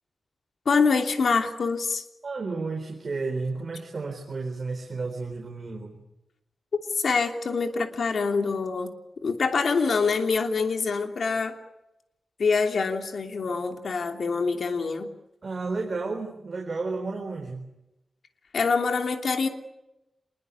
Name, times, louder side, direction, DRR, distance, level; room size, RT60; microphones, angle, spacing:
voice 1, 0.6-2.0 7.0-8.9 9.2-11.5 12.4-15.1 18.5-19.5, left 4 dB, 65° left, 5 dB, 3.0 m, -25 dB
voice 2, 2.2-6.0 15.4-17.7, right 3 dB, 45° right, 3 dB, 4.2 m, -32 dB
27.5 x 21.5 x 8.4 m, 0.92 s
wide cardioid pair, 105°, 0 cm